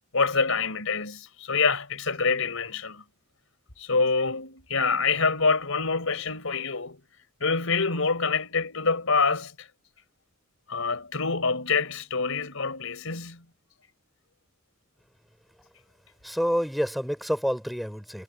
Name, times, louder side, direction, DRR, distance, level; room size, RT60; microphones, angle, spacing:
voice 1, 0.1-3.0 3.8-7.0 7.4-9.7 10.7-13.4, left 4 dB, 80° left, 4.2 m, -26 dB
voice 2, 16.2-18.2, equal, ahead, 3.3 m, -28 dB
head